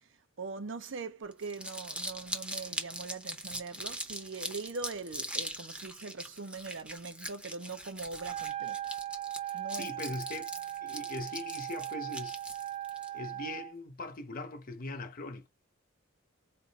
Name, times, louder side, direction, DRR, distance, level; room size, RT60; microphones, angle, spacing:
voice 1, 0.4-8.8 9.5-9.9, right 4 dB, 65° right, 0.7 m, -41 dB
Crumpling crinkling, 1.3-13.1, right 1 dB, 5° right, 0.7 m, -41 dB
Wind instrument woodwind instrument, 8.1-13.7, right 13 dB, 30° right, 0.3 m, -39 dB
voice 2, 9.5-10.5 10.8-12.4 13.1-15.5, left 2 dB, 45° left, 0.9 m, -41 dB
4.3 x 2.6 x 4.0 m
head